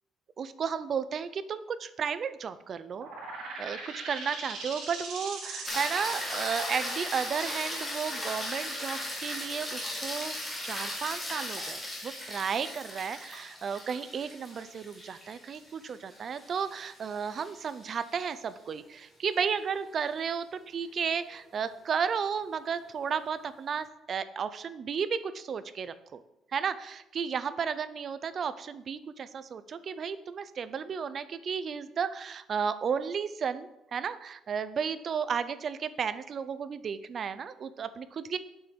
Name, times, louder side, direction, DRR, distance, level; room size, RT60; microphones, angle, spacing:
voice 1, 0.4-3.1 3.6-10.4 10.6-26.2 26.5-38.4, right 6 dB, 35° right, 13 dB, 0.6 m, -33 dB
sound 1, 2.9-10.3, right 3 dB, 65° right, 3.6 m, -42 dB
sound 2, 5.6-18.0 22.5-22.6, left 1 dB, 10° left, 2.3 m, -37 dB
7.9 x 5.9 x 6.8 m, 0.85 s
cardioid pair, 170°, 0 cm